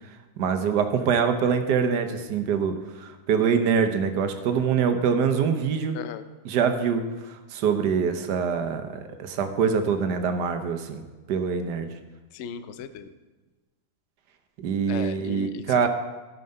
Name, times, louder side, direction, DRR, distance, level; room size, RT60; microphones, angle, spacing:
voice 1, 0.4-6.0 6.4-11.0 11.3-11.9 14.6-15.9, right 6 dB, 80° right, 8 dB, 1.4 m, -24 dB
voice 2, 12.3-13.1 14.9-15.9, left 7 dB, 65° left, 11 dB, 0.7 m, -36 dB
13.0 x 5.6 x 5.4 m, 1.2 s
omnidirectional pair, 1.8 m